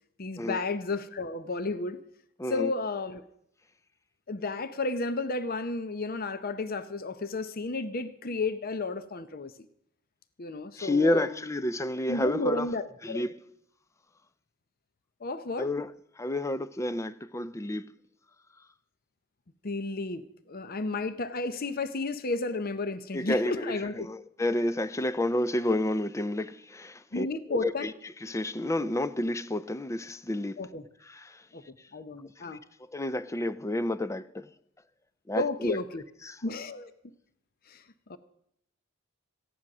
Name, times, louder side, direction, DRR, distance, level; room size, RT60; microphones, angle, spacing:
voice 1, 0.2-2.0 2.5-3.2 4.3-9.5 10.4-11.3 12.1-13.2 15.2-15.7 19.6-24.1 27.1-27.9 30.6-30.8 31.5-31.6 31.9-32.6 35.4-36.0 36.4-36.9 37.7-37.8 38.1-38.2, left 3 dB, 45° left, 0.7 m, -32 dB
voice 2, 2.4-2.7 10.8-12.7 13.0-13.3 15.6-15.9 16.2-17.8 23.1-27.9 28.2-30.6 31.1-31.4 32.4-32.6 32.9-34.5 35.3-35.8 36.2-36.4, left 1 dB, 15° left, 0.4 m, -30 dB
15.0 x 10.0 x 6.1 m
head